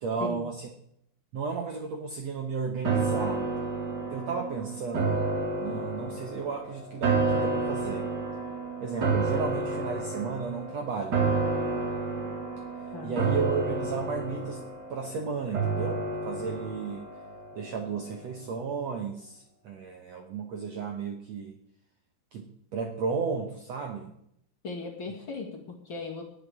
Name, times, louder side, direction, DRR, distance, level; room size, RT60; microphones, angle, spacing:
voice 1, 0.0-0.7 1.3-3.4 4.1-5.2 5.6-8.1 8.8-11.3 13.0-17.1 17.5-21.6 22.3-24.1, right 5 dB, 75° right, 3 dB, 1.5 m, -34 dB
sound 1, 2.8-18.1 18.5-18.6, right 3 dB, 50° right, 1.2 m, -30 dB
voice 2, 12.9-13.3 24.6-26.2, left 3 dB, 40° left, -1 dB, 2.3 m, -37 dB
18.5 x 11.0 x 3.6 m, 0.73 s
omnidirectional pair, 4.6 m